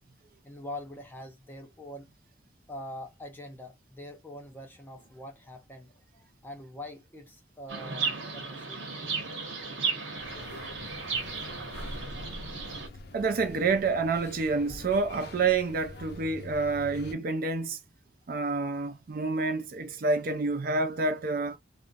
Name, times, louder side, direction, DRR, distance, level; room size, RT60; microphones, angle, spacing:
voice 1, 0.4-2.1 2.7-8.8, left 1 dB, 10° left, 0.6 m, -44 dB
Chirp tweet, 7.7-12.9, right 5 dB, 85° right, 1.0 m, -35 dB
sound 1, 10.2-17.1, left 2 dB, 55° left, 0.5 m, -44 dB
voice 2, 13.1-17.8 18.3-21.6, right 4 dB, 50° right, 0.4 m, -28 dB
2.5 x 2.1 x 2.5 m
head